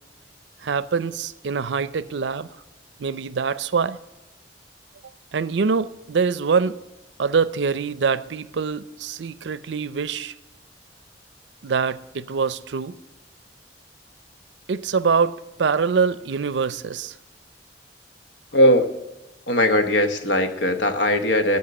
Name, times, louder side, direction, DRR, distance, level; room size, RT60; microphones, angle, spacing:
voice 1, 0.6-2.5 3.0-4.0 5.3-6.8 7.2-10.3 11.6-13.0 14.7-15.3 15.6-17.1, right 5 dB, 75° right, 0.5 m, -24 dB
voice 2, 18.5-18.9 19.5-21.6, left 1 dB, 80° left, 1.1 m, -19 dB
13.5 x 5.5 x 7.6 m
head